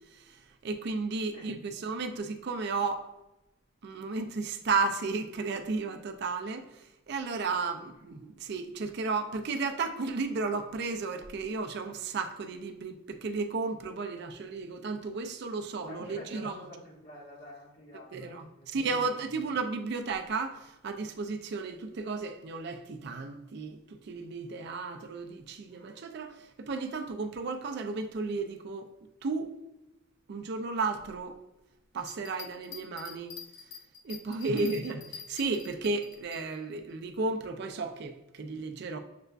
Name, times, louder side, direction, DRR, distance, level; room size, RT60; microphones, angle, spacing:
voice 1, 0.1-3.1 3.8-16.5 18.1-28.9 29.2-29.5 30.3-31.4 31.9-33.3 34.0-39.0, right 4 dB, 55° right, 0.4 m, -34 dB
voice 2, 15.8-19.2 34.3-34.6, equal, 40° left, 1.2 m, -49 dB
sound 1, 32.0-36.4, left 6 dB, 65° left, 0.5 m, -46 dB
6.6 x 2.3 x 2.2 m
head